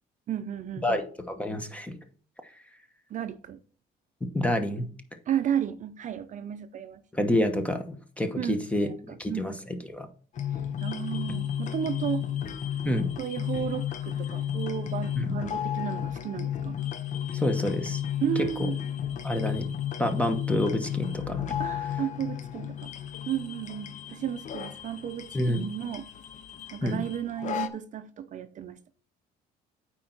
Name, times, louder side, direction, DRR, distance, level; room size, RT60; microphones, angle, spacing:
voice 1, 0.3-1.0 3.1-3.6 5.3-7.0 8.4-9.6 10.8-12.3 13.2-16.8 18.2-18.8 21.6-22.9 23.3-26.1 26.7-28.8, right 9 dB, 45° right, 0.6 m, -33 dB
voice 2, 0.8-2.0 2.4-2.5 4.2-4.9 7.1-10.1 12.8-13.1 15.2-15.3 17.3-18.0 19.2-19.7 20.0-21.5 25.3-25.7 26.8-27.0, left 1 dB, 10° left, 1.0 m, -28 dB
Mridangam and morsing in an ambient soundscape, 10.4-27.7, left 10 dB, 45° left, 0.7 m, -33 dB
8.5 x 4.5 x 3.9 m
cardioid pair, 110°, 17 cm